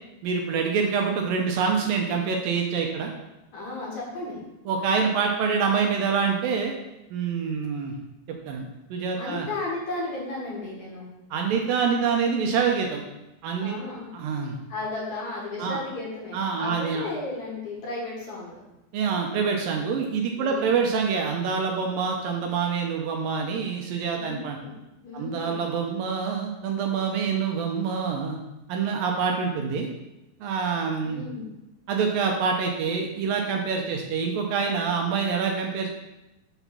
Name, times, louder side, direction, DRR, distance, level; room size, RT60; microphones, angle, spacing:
voice 1, 0.2-3.1 4.7-6.7 7.1-7.9 8.5-9.5 11.3-13.0 13.4-13.8 14.1-14.6 15.6-15.8 16.3-17.1 18.9-24.6 25.1-28.4 28.7-29.9 30.4-31.2 31.9-35.9, right 5 dB, 80° right, 1 dB, 2.2 m, -26 dB
voice 2, 3.5-4.4 9.2-11.1 13.6-14.1 14.7-18.6 20.4-20.8 24.2-24.7 25.0-25.6 31.0-31.5, left 2 dB, 55° left, -4 dB, 2.7 m, -34 dB
7.9 x 4.2 x 5.7 m, 0.97 s
omnidirectional pair, 4.4 m